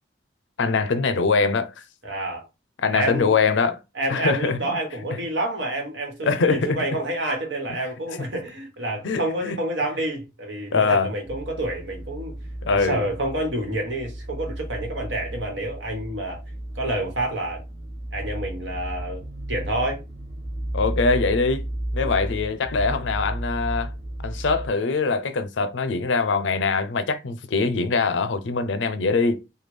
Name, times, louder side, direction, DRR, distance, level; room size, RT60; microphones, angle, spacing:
voice 1, 0.6-1.7 2.8-3.8 4.1-4.8 6.2-6.8 9.0-9.6 10.7-11.1 12.6-13.0 20.7-21.7 21.9-23.9 24.2-29.4, left 4 dB, 85° left, 0.5 m, -23 dB
voice 2, 2.0-2.5 2.9-3.3 3.9-12.3 12.7-16.4 16.7-17.6 18.1-20.0 22.0-22.3, right 1 dB, 85° right, 1.3 m, -28 dB
sound 1, 11.2-24.7, right 1 dB, 40° right, 0.5 m, -33 dB
3.2 x 2.3 x 3.3 m
head